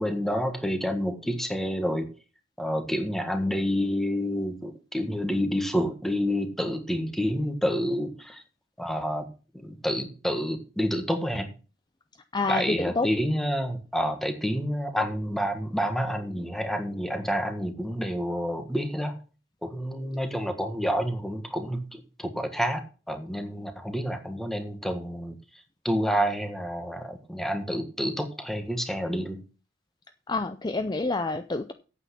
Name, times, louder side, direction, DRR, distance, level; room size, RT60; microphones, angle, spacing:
voice 1, 0.0-2.1 2.6-8.4 8.8-9.3 9.6-11.5 12.5-19.2 19.6-22.8 23.1-25.3 25.8-29.4, equal, ahead, 7 dB, 1.5 m, -28 dB
voice 2, 12.3-13.1 30.3-31.7, left 3 dB, 25° left, 9 dB, 0.5 m, -28 dB
8.9 x 8.5 x 5.9 m, 0.35 s
head